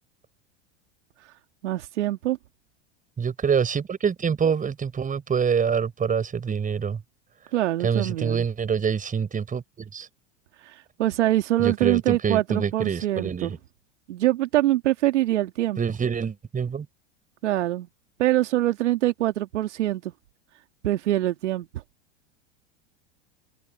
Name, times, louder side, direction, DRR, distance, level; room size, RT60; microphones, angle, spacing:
voice 1, 1.6-2.4 7.5-8.5 10.6-13.5 14.1-15.8 17.4-17.9 18.2-20.1 20.8-21.7, right 14 dB, 80° right, 2.2 m, -24 dB
voice 2, 3.2-7.0 7.8-10.1 11.6-13.6 15.8-16.9, right 6 dB, 20° right, 5.1 m, -26 dB
hypercardioid pair, 100°, 35 cm